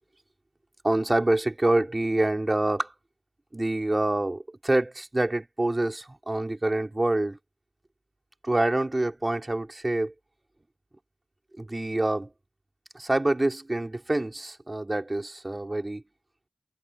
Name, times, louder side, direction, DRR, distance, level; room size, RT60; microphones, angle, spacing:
voice 1, 0.8-2.9 3.5-7.4 8.4-10.1 11.6-12.3 12.9-16.0, right 2 dB, 30° right, 3.7 m, -26 dB
cardioid pair, 45°, 0 cm